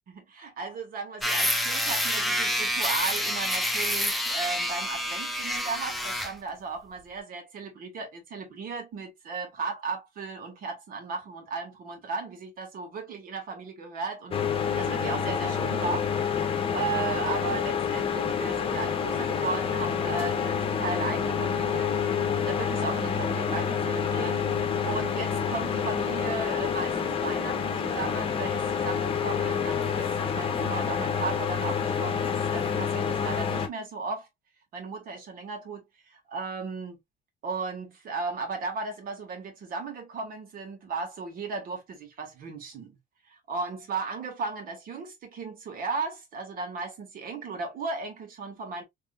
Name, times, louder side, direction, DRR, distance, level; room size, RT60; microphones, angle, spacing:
voice 1, 0.1-16.1 16.7-22.0 22.5-34.3 34.7-37.0 37.4-43.0 43.3-48.8, right 4 dB, 60° right, 1.8 m, -36 dB
sound 1, 1.2-6.3, equal, ahead, 0.9 m, -28 dB
sound 2, 14.3-33.7, left 7 dB, 35° left, 1.0 m, -28 dB
3.7 x 3.3 x 2.3 m
cardioid pair, 110°, 17 cm